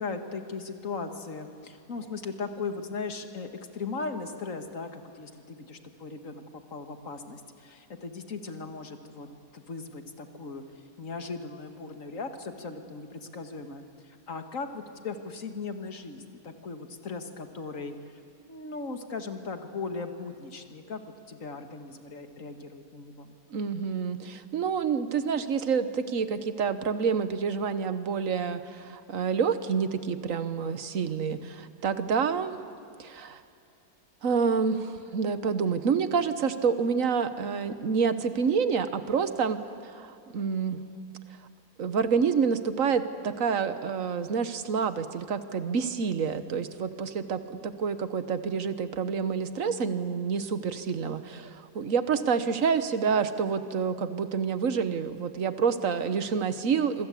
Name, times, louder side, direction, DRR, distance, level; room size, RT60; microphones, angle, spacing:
voice 1, 0.0-9.3 9.5-10.6 11.0-18.2 18.5-23.4, left 4 dB, 55° left, 7 dB, 2.1 m, -38 dB
voice 2, 23.5-32.6 33.0-33.4 34.2-40.8 41.8-57.1, right 6 dB, 55° right, 11 dB, 1.5 m, -28 dB
26.0 x 24.5 x 8.5 m, 2.6 s
omnidirectional pair, 1.7 m